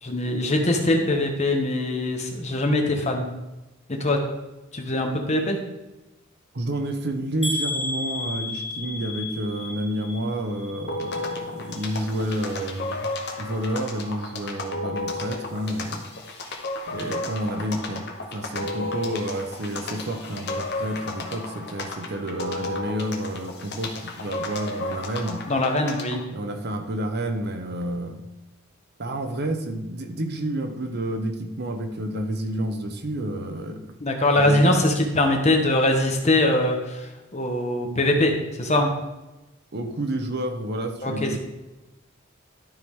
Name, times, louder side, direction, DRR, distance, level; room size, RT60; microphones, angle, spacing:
voice 1, 0.0-3.3 3.9-4.2 4.7-5.6 25.5-26.2 34.0-38.9 41.0-41.4, left 1 dB, 35° left, 3 dB, 1.1 m, -22 dB
voice 2, 6.5-16.1 16.4-16.6 16.9-25.5 26.3-28.2 29.0-34.0 34.4-34.8 39.7-41.4, right 1 dB, 55° right, 6 dB, 0.8 m, -30 dB
sound 1, 7.4-11.4 11.7-12.3 12.8-12.9 13.2-13.3, left 2 dB, ahead, 1.2 m, -33 dB
sound 2, 10.9-26.2, left 2 dB, 55° left, 1.1 m, -33 dB
12.0 x 4.8 x 3.6 m, 1.0 s
head